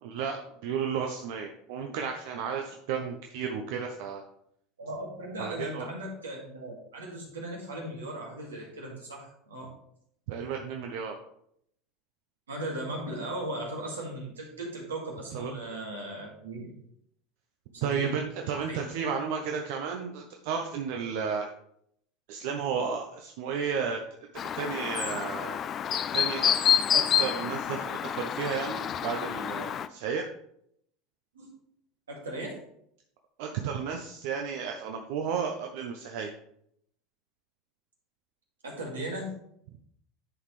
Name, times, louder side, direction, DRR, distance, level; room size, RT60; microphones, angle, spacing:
voice 1, 0.0-4.2 5.4-5.9 10.3-11.2 15.3-15.8 17.8-21.5 22.3-24.0 24.5-25.6 26.1-30.2 33.4-36.3, right 6 dB, 65° right, 3 dB, 0.7 m, -33 dB
voice 2, 4.8-9.6 12.5-16.7 17.7-18.1 18.6-18.8 31.3-31.5 32.1-32.6 38.6-39.3, right 1 dB, 90° right, -2 dB, 2.0 m, -37 dB
Chirp tweet, 24.4-29.9, left 9 dB, 40° left, 0.4 m, -28 dB
10.5 x 4.1 x 3.2 m, 0.72 s
hypercardioid pair, 80°, 0 cm